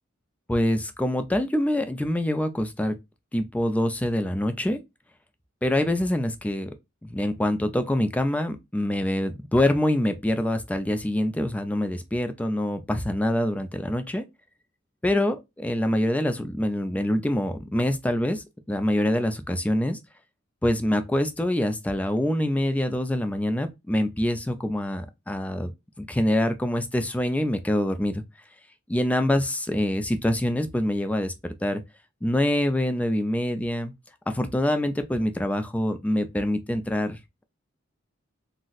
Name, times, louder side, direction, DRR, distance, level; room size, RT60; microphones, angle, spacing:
voice 1, 0.5-3.0 3.3-4.8 5.6-6.7 7.0-14.3 15.0-20.0 20.6-25.7 26.0-28.2 28.9-31.8 32.2-33.9 34.3-37.2, left 1 dB, 5° left, 0.3 m, -25 dB
3.9 x 2.0 x 2.4 m
head